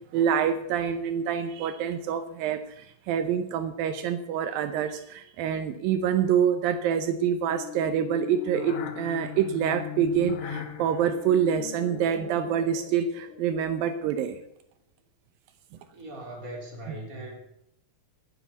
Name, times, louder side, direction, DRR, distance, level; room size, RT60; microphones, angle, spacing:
voice 1, 0.1-14.4, right 8 dB, 80° right, 11 dB, 2.6 m, -26 dB
sound 1, 7.5-13.9, left 7 dB, 55° left, 1.8 m, -39 dB
voice 2, 15.9-17.3, right 1 dB, 25° right, 1 dB, 3.6 m, -39 dB
12.0 x 10.0 x 8.2 m, 0.72 s
omnidirectional pair, 4.1 m